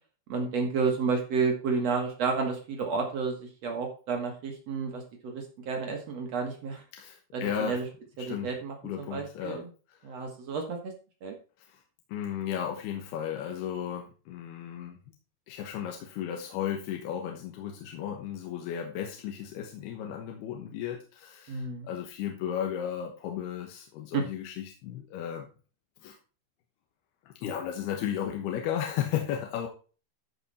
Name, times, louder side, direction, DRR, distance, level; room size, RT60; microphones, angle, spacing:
voice 1, 0.3-6.8 7.3-7.8 8.2-9.7 10.0-10.9 11.2-11.3 21.5-21.9 24.1-24.2, right 5 dB, 65° right, 2 dB, 1.7 m, -31 dB
voice 2, 6.9-7.8 8.2-8.5 8.8-9.6 9.9-10.1 11.6-11.8 12.1-15.0 15.5-25.5 26.0-26.2 27.3-29.7, left 9 dB, 70° left, 2 dB, 2.9 m, -34 dB
13.5 x 5.4 x 4.2 m, 0.36 s
omnidirectional pair, 5.3 m